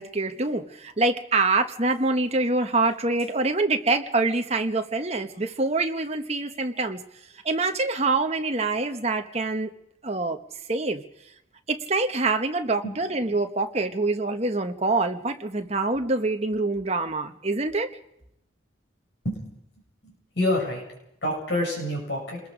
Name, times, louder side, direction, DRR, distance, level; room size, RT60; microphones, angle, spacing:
voice 1, 0.0-7.0 7.4-9.7 10.0-10.4 10.7-11.0 11.7-17.9, right 3 dB, 30° right, 5 dB, 1.1 m, -25 dB
voice 2, 20.0-20.8 21.2-22.4, left 1 dB, 60° left, 0 dB, 7.5 m, -27 dB
27.5 x 21.0 x 5.1 m, 0.81 s
head